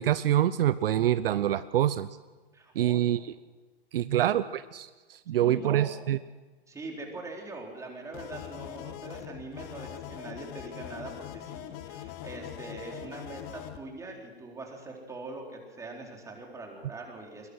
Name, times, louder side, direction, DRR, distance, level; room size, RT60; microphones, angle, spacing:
voice 1, 0.0-2.1 2.8-3.3 3.9-6.2, right 12 dB, 65° right, 15 dB, 0.7 m, -26 dB
voice 2, 2.5-3.0 4.1-4.5 5.3-5.9 6.7-17.5, right 3 dB, 10° right, 0 dB, 3.8 m, -42 dB
sound 1, 8.1-13.8, left 11 dB, 30° left, 1.3 m, -42 dB
21.5 x 20.5 x 6.3 m, 1.3 s
hypercardioid pair, 135°, 31 cm